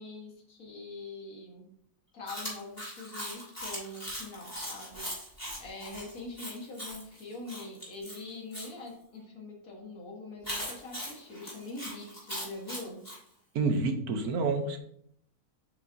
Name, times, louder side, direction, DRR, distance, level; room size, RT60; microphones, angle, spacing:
voice 1, 0.0-1.7 2.1-13.0, left 2 dB, 65° left, -1 dB, 2.0 m, -44 dB
Chewing mastication, 2.3-8.7 10.4-13.2, equal, 15° left, 2.5 m, -40 dB
voice 2, 13.5-14.8, right 3 dB, 75° right, 6 dB, 1.4 m, -28 dB
7.7 x 5.6 x 2.7 m, 0.68 s
omnidirectional pair, 1.6 m